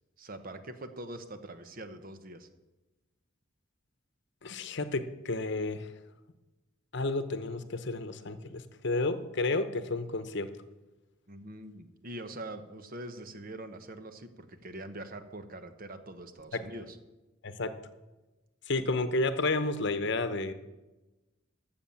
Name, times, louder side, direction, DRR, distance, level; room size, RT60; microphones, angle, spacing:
voice 1, 0.2-2.5 11.3-17.0, right 1 dB, 45° right, 9 dB, 1.0 m, -43 dB
voice 2, 4.4-5.9 6.9-10.5 16.5-16.6 17.4-17.7 18.7-20.5, left 2 dB, 55° left, 11 dB, 0.9 m, -31 dB
13.0 x 7.0 x 7.1 m, 1.1 s
head